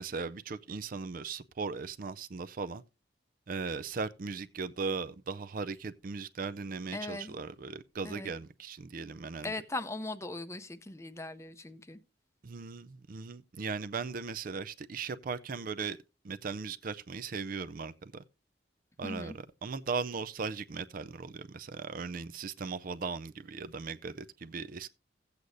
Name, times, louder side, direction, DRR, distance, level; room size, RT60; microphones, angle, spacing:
voice 1, 0.0-2.8 3.5-9.5 12.4-16.0 16.2-18.2 19.0-24.9, right 4 dB, 50° right, 0.5 m, -38 dB
voice 2, 6.9-7.4 8.0-8.3 9.4-12.0 19.0-19.3, left 2 dB, 15° left, 0.6 m, -39 dB
15.5 x 8.1 x 2.6 m
head